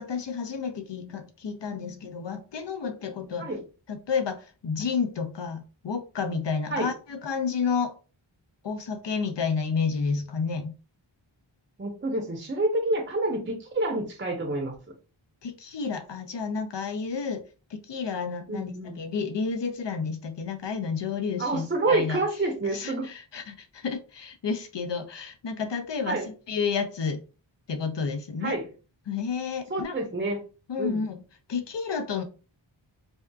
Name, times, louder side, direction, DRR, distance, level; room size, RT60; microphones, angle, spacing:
voice 1, 0.0-3.5 3.9-8.0 8.6-10.7 15.4-17.4 17.7-22.2 22.7-26.2 26.5-27.2 27.7-28.6 29.1-30.0 30.7-31.2 31.5-32.2, left 5 dB, 65° left, 0.6 m, -30 dB
voice 2, 11.8-14.8 18.5-19.0 21.4-23.1 26.1-26.3 28.4-28.7 29.7-30.4 30.8-31.1, right 2 dB, 25° right, 0.6 m, -28 dB
2.7 x 2.3 x 2.2 m
wide cardioid pair, 55°, 48 cm